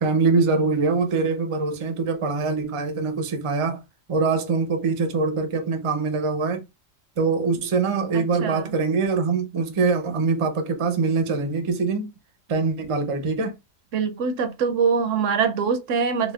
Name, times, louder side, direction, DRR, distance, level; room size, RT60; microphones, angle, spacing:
voice 1, 0.0-3.8 4.1-6.6 7.2-12.1 12.5-13.5, right 4 dB, 40° right, 0.4 m, -23 dB
voice 2, 8.1-8.7 13.9-16.3, right 6 dB, 75° right, 0.9 m, -24 dB
4.0 x 2.2 x 2.3 m
omnidirectional pair, 1.4 m